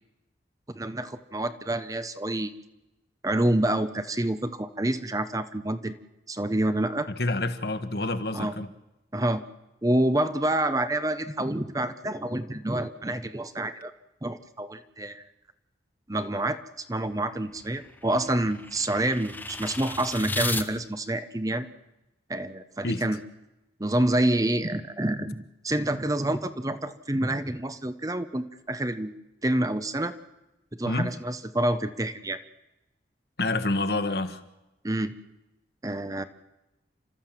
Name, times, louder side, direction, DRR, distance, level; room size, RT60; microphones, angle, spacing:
voice 1, 0.7-2.5 3.2-6.0 6.3-7.1 8.3-8.5 9.1-9.4 9.8-13.9 14.2-15.2 16.1-21.7 22.3-23.2 23.8-29.1 29.4-30.1 30.7-32.4 34.8-35.1 35.8-36.2, right 1 dB, 20° right, 11 dB, 0.8 m, -27 dB
voice 2, 7.2-8.7 22.8-23.0 30.8-31.1 33.4-34.4, left 2 dB, 60° left, 10 dB, 1.4 m, -27 dB
sound 1, 17.0-20.7, left 2 dB, 10° left, 0.9 m, -35 dB
29.5 x 13.5 x 7.5 m, 0.99 s
head